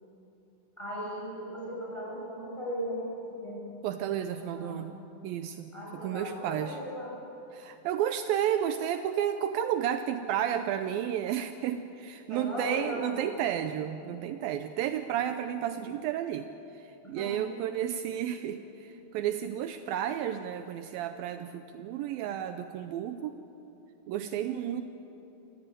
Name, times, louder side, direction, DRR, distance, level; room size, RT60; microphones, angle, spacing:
voice 1, 0.8-3.6 4.4-4.9 5.7-7.1 12.3-13.2 17.0-17.4, equal, 5° left, -5 dB, 7.3 m, -37 dB
voice 2, 3.8-6.8 7.5-16.5 16.7-23.4 24.1-24.8, right 10 dB, 80° right, 9 dB, 2.4 m, -32 dB
27.5 x 15.0 x 9.0 m, 3.0 s
omnidirectional pair, 4.3 m